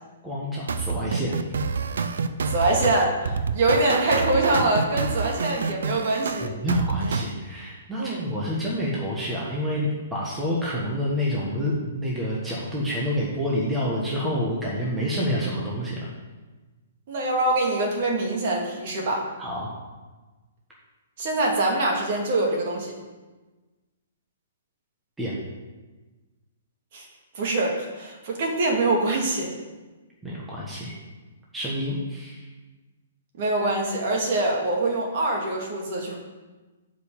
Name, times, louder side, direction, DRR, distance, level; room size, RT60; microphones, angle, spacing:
voice 1, 0.2-1.3 6.4-16.1 19.4-19.7 25.2-25.4 30.2-30.9 31.5-32.4, equal, 5° right, -6 dB, 1.2 m, -28 dB
sound 1, 0.7-7.3, right 5 dB, 80° right, 0.7 m, -27 dB
voice 2, 2.5-6.5 8.0-8.2 17.1-19.3 21.2-22.9 26.9-27.1 27.3-29.5 33.4-36.2, right 2 dB, 40° right, -1 dB, 2.1 m, -24 dB
8.0 x 5.2 x 6.9 m, 1.2 s
hypercardioid pair, 170°, 0 cm